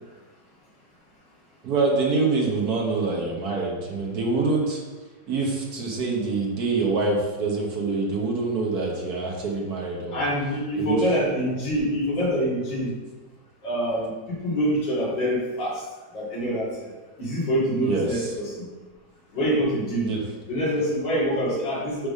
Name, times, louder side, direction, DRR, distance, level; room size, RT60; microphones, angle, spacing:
voice 1, 1.6-4.8 5.3-10.2 10.8-11.0 17.9-18.2 20.0-20.2, right 3 dB, 60° right, -1 dB, 1.7 m, -25 dB
voice 2, 10.1-12.9 13.6-15.8 16.1-16.9 17.2-18.7 19.3-20.1 20.5-22.1, equal, 80° left, -8 dB, 2.9 m, -25 dB
8.6 x 3.4 x 5.3 m, 1.2 s
omnidirectional pair, 1.9 m